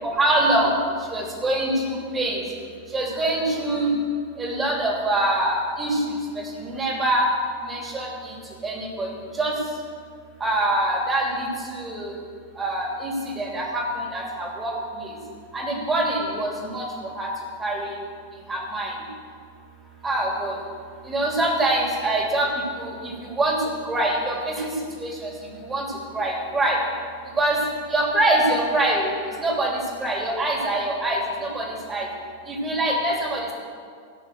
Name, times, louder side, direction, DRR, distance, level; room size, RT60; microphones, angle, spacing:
voice 1, 0.2-0.7 1.1-2.4 2.9-3.9 4.4-6.0 6.6-7.2 7.6-8.3 8.6-9.1 9.4-9.5 10.4-12.1 12.6-14.7 15.5-16.8 17.2-17.3 17.6-17.9 18.5-18.9 20.0-20.5 21.1-22.5 22.8-23.6 23.8-24.7 25.0-25.3 25.7-25.8 26.1-26.8 27.4-27.6 27.9-29.1 29.4-32.1 32.5-33.5, right 1 dB, 15° right, -1 dB, 3.0 m, -24 dB
16.5 x 6.4 x 6.5 m, 2.1 s
figure-of-eight pair, 90°, 0 cm